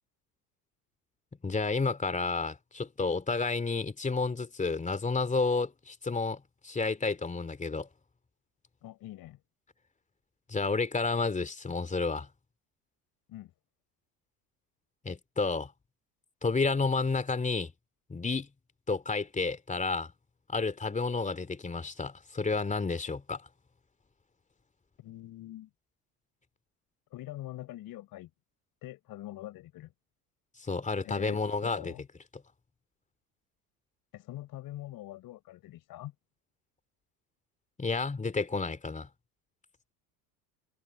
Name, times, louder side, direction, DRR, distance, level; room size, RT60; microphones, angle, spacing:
voice 1, 1.4-7.9 10.5-12.3 15.0-15.7 16.4-17.7 18.1-18.5 18.9-20.1 20.5-23.4 30.6-31.9 37.8-39.1, left 4 dB, 15° left, 2.7 m, -31 dB
voice 2, 8.8-9.4 13.3-13.5 25.0-25.7 27.1-28.3 28.8-29.9 31.0-32.0 34.1-36.1, left 15 dB, 45° left, 4.6 m, -44 dB
figure-of-eight pair, 70°, 47 cm